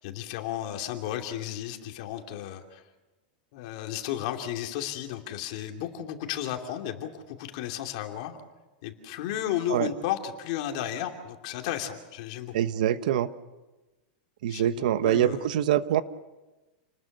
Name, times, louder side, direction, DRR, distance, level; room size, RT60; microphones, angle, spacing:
voice 1, 0.0-2.8 3.5-8.4 8.8-12.5 14.5-15.5, left 11 dB, 45° left, 4 dB, 2.8 m, -33 dB
voice 2, 12.5-13.3 14.4-16.0, right 11 dB, 65° right, 13 dB, 1.1 m, -24 dB
29.0 x 20.0 x 6.7 m, 1.1 s
supercardioid pair, 175°, 5 cm